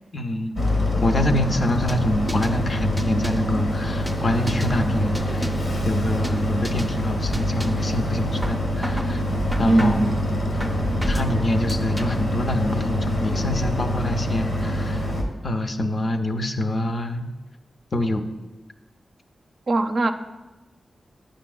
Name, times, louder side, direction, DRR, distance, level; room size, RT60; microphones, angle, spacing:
voice 1, 0.1-0.5 1.0-9.2 9.6-10.0 11.1-15.1 15.4-17.3 17.9-18.3, left 1 dB, 55° left, 6 dB, 0.5 m, -26 dB
Boat Water vehicle, 0.6-15.2, left 1 dB, 85° left, 1.0 m, -25 dB
sound 1, 1.9-2.6 3.0-3.5 4.1-4.8 5.1-5.7 6.2-6.4 6.6-6.9 7.3-7.9 8.4-9.1 9.5-10.1 10.6-11.3 11.7-12.3, equal, 5° right, 0.5 m, -34 dB
voice 2, 9.6-10.1 19.7-20.1, right 2 dB, 60° right, 7 dB, 0.4 m, -19 dB
9.0 x 5.0 x 2.3 m, 1.1 s
cardioid pair, 55°, 0 cm